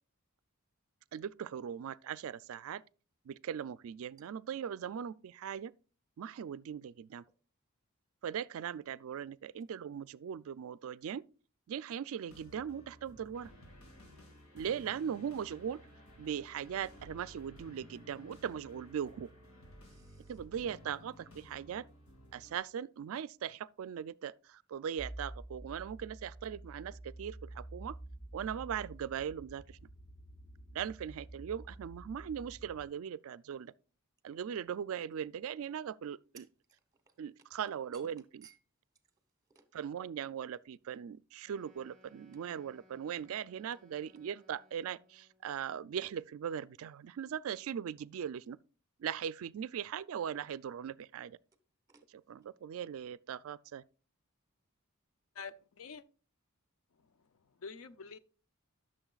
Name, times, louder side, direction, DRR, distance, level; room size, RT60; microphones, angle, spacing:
voice 1, 1.1-2.8 3.3-5.7 6.2-7.2 8.2-11.2 11.7-13.5 14.5-15.8 16.2-19.3 20.3-21.9 22.3-28.0 28.3-29.8 30.7-33.7 34.2-36.4 37.2-38.2 39.7-48.6 49.0-51.4 52.3-53.8, right 8 dB, 65° right, 0.3 m, -39 dB
sound 1, 12.3-22.6, equal, 90° left, 2.6 m, -55 dB
voice 2, 19.8-20.4 36.3-37.2 37.9-38.1 38.4-38.6 39.5-39.7 51.9-52.1, right 6 dB, 15° right, 1.0 m, -60 dB
sound 2, 25.0-32.9, right 1 dB, 40° left, 3.8 m, -49 dB
Wind instrument woodwind instrument, 41.4-45.5, left 1 dB, ahead, 1.4 m, -65 dB
voice 3, 55.4-56.0 57.6-58.2, left 5 dB, 70° left, 0.5 m, -46 dB
12.5 x 6.4 x 2.4 m
head